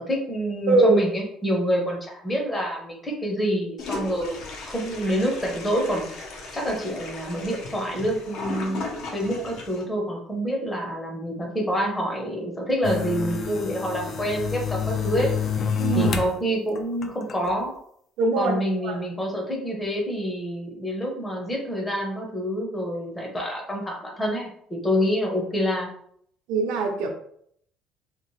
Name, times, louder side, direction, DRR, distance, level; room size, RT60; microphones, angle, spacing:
voice 1, 0.0-4.4 4.7-6.1 6.5-8.8 9.1-15.3 15.9-17.7 18.4-25.9, equal, 10° left, 0 dB, 0.7 m, -27 dB
voice 2, 0.7-1.0 15.8-16.1 18.2-18.6 18.8-19.0 26.5-27.1, right 3 dB, 70° right, 3 dB, 0.6 m, -21 dB
Toilet flush, 3.8-9.8, left 3 dB, 60° left, 0.7 m, -36 dB
sound 1, 12.8-16.4 16.8-17.5, left 6 dB, 35° left, 0.3 m, -28 dB
2.9 x 2.8 x 3.1 m, 0.66 s
cardioid pair, 170°, 0 cm